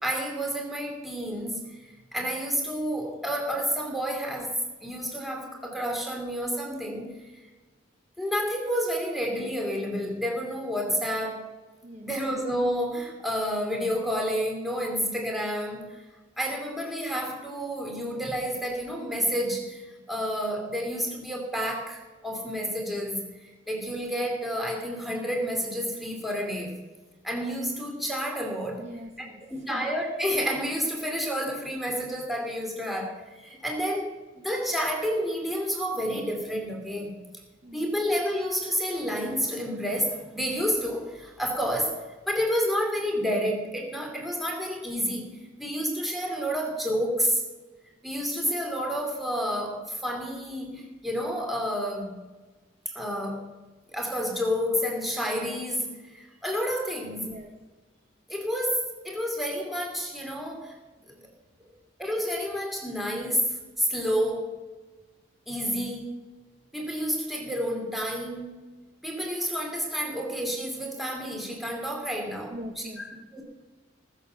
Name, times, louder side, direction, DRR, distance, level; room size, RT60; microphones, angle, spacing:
voice 1, 0.0-7.3 8.2-11.5 12.0-16.0 16.4-26.8 27.2-28.8 29.2-37.2 37.7-47.4 48.0-52.2 52.9-53.5 53.9-57.3 58.3-60.8 61.6-61.7 62.0-64.6 65.5-66.2 66.7-68.7 69.0-72.5 73.3-73.4, equal, ahead, 0 dB, 2.7 m, -30 dB
voice 2, 28.8-29.9 37.6-37.9 57.2-57.5 61.1-61.3 72.5-73.3, equal, 35° right, 1 dB, 1.5 m, -42 dB
19.5 x 6.9 x 6.8 m, 1.3 s
head